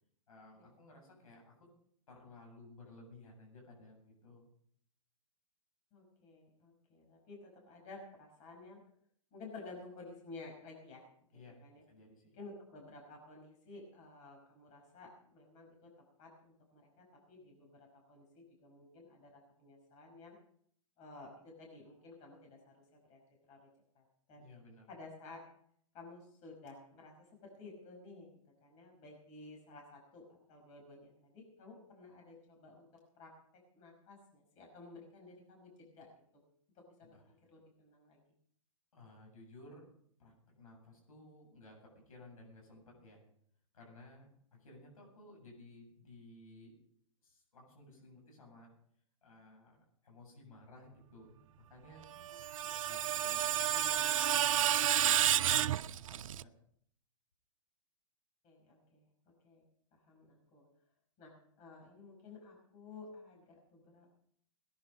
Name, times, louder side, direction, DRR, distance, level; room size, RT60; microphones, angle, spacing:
voice 1, 0.3-1.5 2.1-4.4 11.3-11.6 11.9-12.4 24.4-24.9 37.0-37.4 38.9-39.9 40.2-43.2 43.7-44.3 44.6-46.7 47.2-48.7 49.2-49.8 50.0-52.0 52.8-56.5, left 2 dB, 80° left, 0 dB, 7.9 m, -56 dB
voice 2, 5.9-8.8 9.3-11.1 11.3-11.8 12.3-15.9 16.2-20.4 21.0-23.7 24.0-24.5 24.9-25.4 25.9-28.3 28.6-32.9 33.2-33.3 33.7-36.4 36.8-38.2 52.1-52.8 58.4-59.1 59.4-59.6 59.9-60.7 61.2-64.1, left 3 dB, 35° left, 0 dB, 5.4 m, -54 dB
Screech, 52.1-56.4, right 11 dB, 70° right, 0.5 m, -30 dB
18.5 x 10.5 x 5.3 m, 0.64 s
hypercardioid pair, 125°, 18 cm